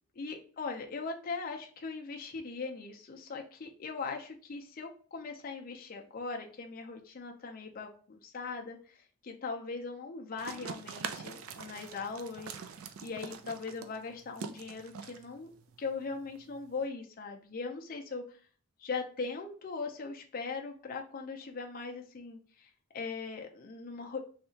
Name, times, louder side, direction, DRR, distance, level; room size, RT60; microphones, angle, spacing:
voice 1, 0.2-12.5 13.0-15.5 15.8-18.4 18.8-24.2, left 4 dB, 40° left, 2 dB, 0.4 m, -40 dB
sound 1, 10.4-16.8, right 6 dB, 70° right, 0.4 m, -44 dB
3.3 x 2.8 x 2.7 m, 0.41 s
head